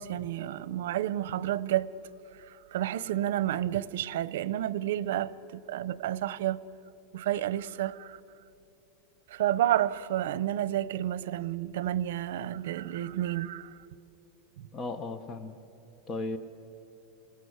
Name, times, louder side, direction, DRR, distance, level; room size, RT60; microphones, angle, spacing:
voice 1, 0.0-1.9 2.4-6.6 7.1-8.2 9.3-13.7 14.6-14.7, right 12 dB, 80° right, 0.7 m, -30 dB
voice 2, 14.7-15.6 16.1-16.4, left 2 dB, 20° left, 0.9 m, -35 dB
27.5 x 18.5 x 8.0 m
supercardioid pair, 170°, 0 cm